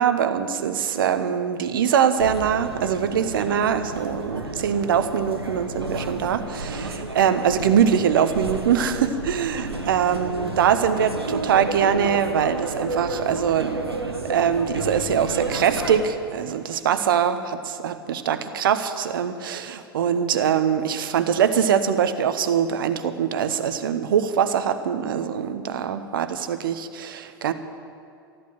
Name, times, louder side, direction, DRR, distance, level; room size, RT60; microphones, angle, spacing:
voice 1, 0.0-27.5, right 8 dB, 60° right, 11 dB, 1.0 m, -23 dB
sound 1, 2.2-16.1, right 2 dB, 85° right, 1.4 m, -31 dB
14.0 x 11.5 x 7.7 m, 2.5 s
figure-of-eight pair, 95°, 13 cm